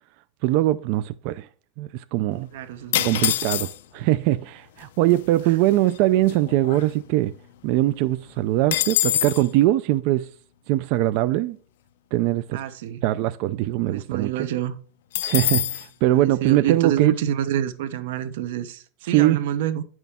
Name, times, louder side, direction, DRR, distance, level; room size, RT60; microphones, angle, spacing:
voice 1, 0.4-1.5 1.8-2.5 3.0-3.7 3.9-7.3 7.6-10.3 10.7-11.6 12.1-12.6 13.0-14.3 15.2-17.1 19.1-19.4, right 15 dB, 45° right, 0.4 m, -21 dB
voice 2, 2.5-3.3 12.5-13.0 13.9-14.8 16.1-19.8, right 10 dB, 70° right, 0.9 m, -27 dB
sound 1, 2.9-4.0 4.8-4.9 5.1-5.4 5.9-7.3 7.7-7.8 8.1-9.5 15.1-15.9, left 13 dB, 80° left, 0.6 m, -25 dB
10.0 x 6.1 x 3.6 m
supercardioid pair, 175°, 0 cm